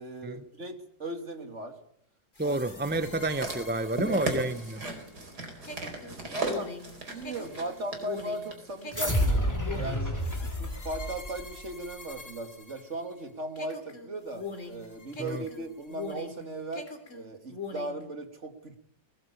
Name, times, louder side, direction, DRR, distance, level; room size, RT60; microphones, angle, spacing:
voice 1, 0.0-1.8 2.4-2.6 4.1-4.2 4.8-5.1 6.3-18.8, right 2 dB, 40° right, 2.7 m, -38 dB
sound 1, 2.3-13.2 13.6-16.4 16.7-18.0, left 4 dB, 40° left, 3.4 m, -43 dB
voice 2, 2.4-4.8 15.2-15.4, right 2 dB, 10° right, 0.4 m, -30 dB
sound 2, 2.8-9.2 9.9-10.0, right 2 dB, 60° right, 5.0 m, -37 dB
sound 3, 8.9-11.7, equal, 10° left, 3.1 m, -29 dB
21.0 x 19.5 x 8.5 m
omnidirectional pair, 2.0 m